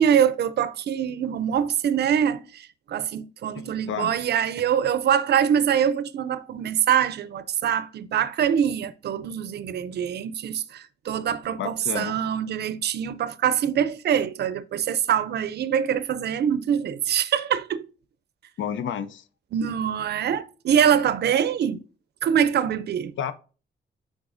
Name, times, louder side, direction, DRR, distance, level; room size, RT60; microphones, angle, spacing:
voice 1, 0.0-17.9 19.5-21.8 22.2-23.1, right 8 dB, 60° right, 0.5 m, -24 dB
voice 2, 3.6-4.1 11.6-12.2 18.6-19.2 23.2-23.3, left 8 dB, 80° left, 0.5 m, -31 dB
9.6 x 3.8 x 2.5 m
wide cardioid pair, 170°, 19 cm